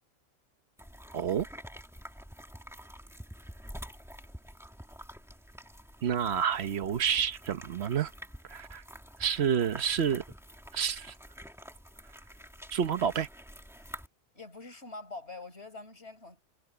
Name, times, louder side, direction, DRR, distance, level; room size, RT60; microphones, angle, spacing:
sound 1, 0.8-14.1, equal, ahead, 2.0 m, -48 dB
voice 1, 1.1-1.5 6.0-8.1 8.5-8.8 9.2-10.2 10.7-11.1 12.7-13.3, right 8 dB, 55° right, 1.1 m, -29 dB
voice 2, 14.3-16.4, left 3 dB, 50° left, 5.3 m, -44 dB
omnidirectional pair, 1.4 m